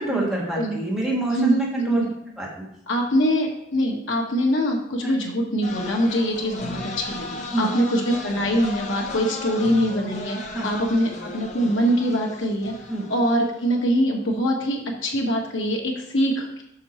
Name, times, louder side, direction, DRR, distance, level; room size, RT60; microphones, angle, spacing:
voice 1, 0.0-2.1 2.4-2.5 5.0-5.1 7.5-7.7 10.5-10.7 12.9-13.1, right 2 dB, ahead, -5 dB, 1.5 m, -25 dB
voice 2, 2.9-12.7 13.1-16.6, equal, 80° left, 0 dB, 1.5 m, -23 dB
sound 1, 5.6-13.8, left 2 dB, 35° left, 0.9 m, -36 dB
6.5 x 6.0 x 4.3 m, 0.77 s
head